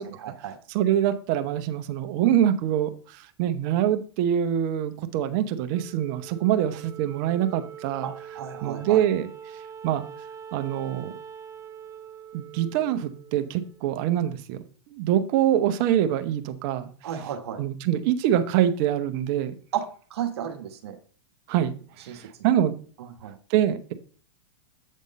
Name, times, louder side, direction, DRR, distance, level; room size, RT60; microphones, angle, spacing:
voice 1, 0.0-0.5 8.0-9.0 17.0-17.6 19.7-19.8 20.1-20.9 22.1-22.2 23.0-23.3, right 9 dB, 75° right, 5 dB, 1.2 m, -33 dB
voice 2, 0.7-8.1 8.6-9.3 9.8-10.0 10.5-11.1 12.3-14.6 14.9-16.9 17.6-19.5 21.5-21.7 22.1-22.7 23.5-23.9, right 11 dB, 50° right, 10 dB, 0.9 m, -24 dB
Wind instrument woodwind instrument, 5.7-14.3, right 7 dB, 20° right, 0.6 m, -43 dB
8.4 x 3.6 x 5.3 m, 0.42 s
hypercardioid pair, 125°, 14 cm